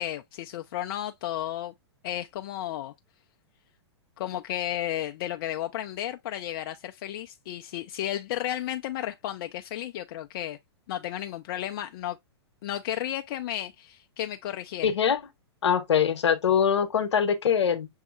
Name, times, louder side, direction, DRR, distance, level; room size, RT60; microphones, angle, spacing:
voice 1, 0.0-1.7 2.0-2.9 4.2-10.6 10.9-12.2 12.6-14.9, left 12 dB, 50° left, 0.4 m, -33 dB
voice 2, 14.8-15.2 15.6-17.9, left 7 dB, 75° left, 0.9 m, -23 dB
6.3 x 2.7 x 2.3 m
hypercardioid pair, 115°, 14 cm